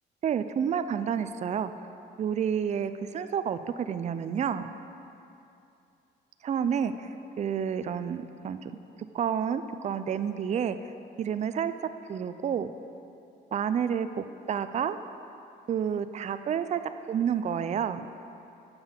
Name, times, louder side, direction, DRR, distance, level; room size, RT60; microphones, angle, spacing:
voice 1, 0.2-1.7 2.2-4.7 6.4-7.1 7.4-8.7 9.1-10.9 11.2-11.7 12.1-12.7 13.5-15.0 15.7-16.8 17.1-18.1, right 8 dB, 35° right, 11 dB, 0.4 m, -29 dB
7.2 x 6.9 x 5.6 m, 2.7 s
cardioid pair, 90°, 20 cm